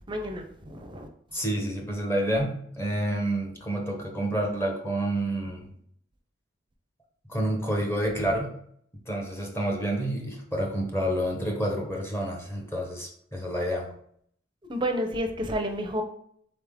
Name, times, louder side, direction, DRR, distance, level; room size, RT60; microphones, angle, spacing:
voice 1, 0.0-1.4 8.2-8.3 14.7-16.0, equal, 25° right, 5 dB, 0.6 m, -31 dB
voice 2, 1.3-5.7 7.3-8.5 9.1-13.9, right 1 dB, 15° left, 0 dB, 0.8 m, -29 dB
3.8 x 3.5 x 3.6 m, 0.65 s
head